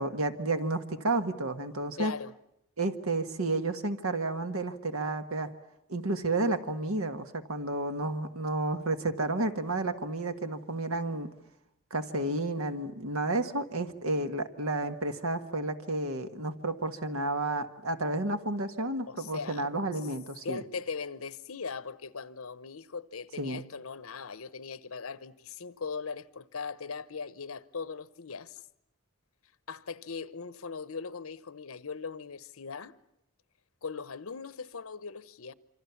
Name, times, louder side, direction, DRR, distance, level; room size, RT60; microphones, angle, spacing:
voice 1, 0.0-2.1 2.8-5.5 5.9-11.3 11.9-20.6 23.4-23.6, right 2 dB, 90° right, 1.7 m, -31 dB
voice 2, 2.0-2.3 19.1-19.6 20.4-28.6 29.7-32.9 33.8-35.5, left 5 dB, 85° left, 0.9 m, -39 dB
27.0 x 25.0 x 7.2 m
head